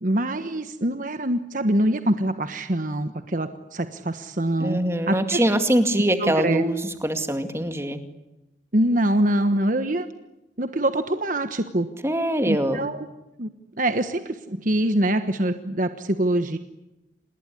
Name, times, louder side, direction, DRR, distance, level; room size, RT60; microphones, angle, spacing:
voice 1, 0.0-4.8 5.1-5.4 6.2-6.6 8.7-10.1 10.6-11.9 12.4-13.1 13.4-13.5 13.8-16.6, right 1 dB, 45° right, 9 dB, 1.3 m, -24 dB
voice 2, 4.6-8.0 12.0-12.9, right 1 dB, 15° right, 8 dB, 2.2 m, -23 dB
27.0 x 20.5 x 9.9 m, 0.97 s
head